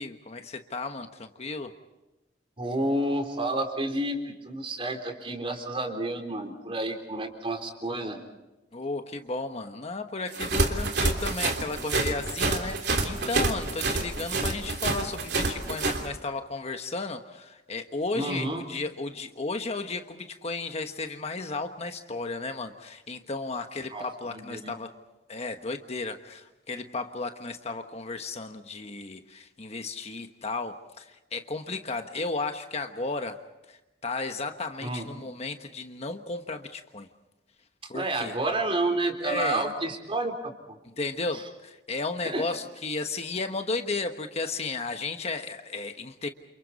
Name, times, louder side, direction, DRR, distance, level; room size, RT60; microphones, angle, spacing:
voice 1, 0.0-1.7 8.7-24.9 25.3-33.4 33.7-37.1 37.9-38.3 39.2-39.7 41.0-46.3, left 3 dB, 35° left, 6 dB, 1.2 m, -34 dB
voice 2, 2.6-8.2 18.1-18.6 23.9-24.7 34.8-35.1 37.8-40.8 42.2-42.6, right 1 dB, 30° right, 4 dB, 3.7 m, -30 dB
sound 1, 10.3-16.0, right 3 dB, 65° right, 3.2 m, -27 dB
29.5 x 28.5 x 4.2 m, 1.0 s
head